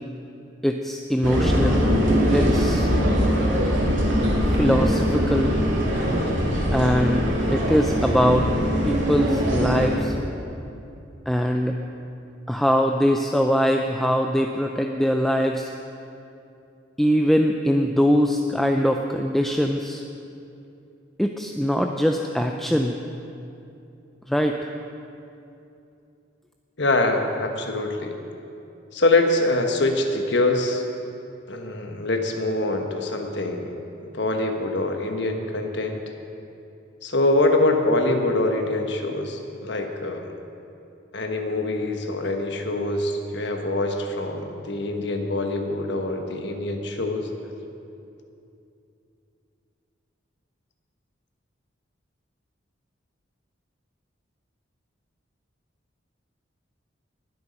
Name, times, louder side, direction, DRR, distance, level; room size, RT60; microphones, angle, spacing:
voice 1, 0.6-1.9 2.3-2.9 4.6-5.6 6.7-8.5 8.8-10.2 11.3-11.8 12.5-15.7 17.0-20.0 21.2-23.0 24.3-24.7, equal, ahead, 3 dB, 0.4 m, -22 dB
sound 1, 1.2-10.0, equal, 70° right, 2.6 m, -22 dB
voice 2, 26.8-28.2 28.9-30.8 31.5-36.0 37.0-40.3 41.1-47.3, left 2 dB, 60° left, 4 dB, 1.3 m, -24 dB
20.0 x 8.2 x 5.3 m, 2.7 s
head